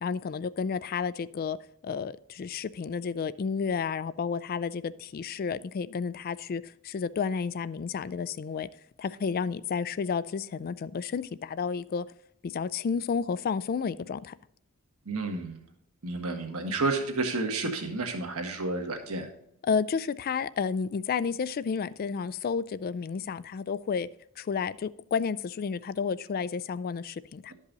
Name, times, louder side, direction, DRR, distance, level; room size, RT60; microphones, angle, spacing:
voice 1, 0.0-1.6 1.8-8.7 9.0-12.0 12.4-14.4 19.7-24.1 24.4-27.5, left 6 dB, 40° left, 0.3 m, -31 dB
voice 2, 15.0-15.6 16.0-19.3, right 3 dB, 70° right, 1.6 m, -31 dB
11.5 x 5.4 x 3.9 m
head